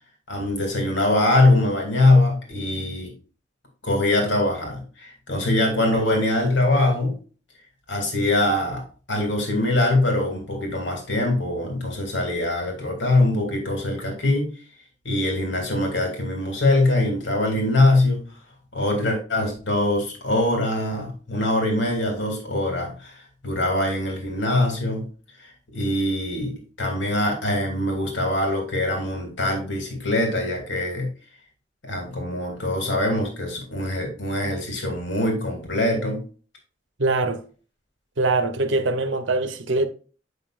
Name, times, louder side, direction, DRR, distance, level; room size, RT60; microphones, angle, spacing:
voice 1, 0.3-3.1 3.8-7.1 7.9-14.5 15.0-18.2 18.7-25.1 25.4-31.1 31.8-36.2, left 2 dB, 80° left, 2.3 m, -23 dB
voice 2, 37.0-37.4 38.2-39.9, right 3 dB, 90° right, 0.9 m, -22 dB
8.2 x 5.4 x 2.5 m
head